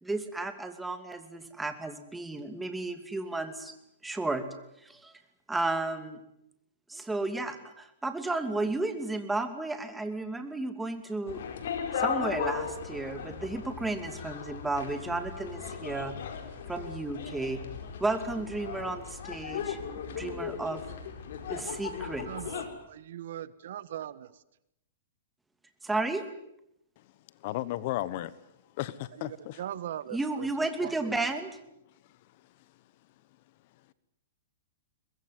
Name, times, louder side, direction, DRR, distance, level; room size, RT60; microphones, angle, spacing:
voice 1, 0.0-3.7 4.0-4.5 4.8-5.1 5.5-6.2 6.9-11.4 11.9-16.1 16.7-17.6 18.0-19.8 20.1-20.8 21.5-22.3 25.8-26.2 30.1-31.5, right 2 dB, 5° right, 8 dB, 2.7 m, -33 dB
sound 1, 11.3-22.7, left 6 dB, 70° left, 4.8 m, -37 dB
voice 2, 21.9-24.4 29.1-30.5 30.8-31.1, right 11 dB, 65° right, 17 dB, 1.3 m, -41 dB
voice 3, 27.4-28.3 28.8-29.6, left 15 dB, 50° left, 18 dB, 1.2 m, -33 dB
23.5 x 21.0 x 9.6 m, 0.80 s
hypercardioid pair, 140°, 0 cm